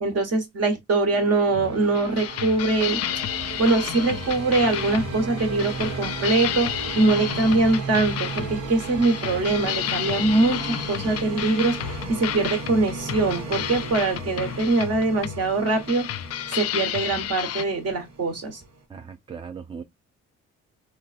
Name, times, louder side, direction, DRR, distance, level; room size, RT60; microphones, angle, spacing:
voice 1, 0.0-3.0 3.6-6.7 6.9-16.0 16.5-18.6, right 3 dB, 55° right, 1.4 m, -23 dB
sound 1, 1.1-18.8, right 3 dB, 80° right, 1.3 m, -35 dB
sound 2, 1.5-17.6, left 12 dB, 55° left, 0.4 m, -32 dB
voice 2, 18.9-19.8, right 6 dB, 20° right, 0.4 m, -38 dB
3.8 x 2.3 x 2.4 m
cardioid pair, 90°, 30 cm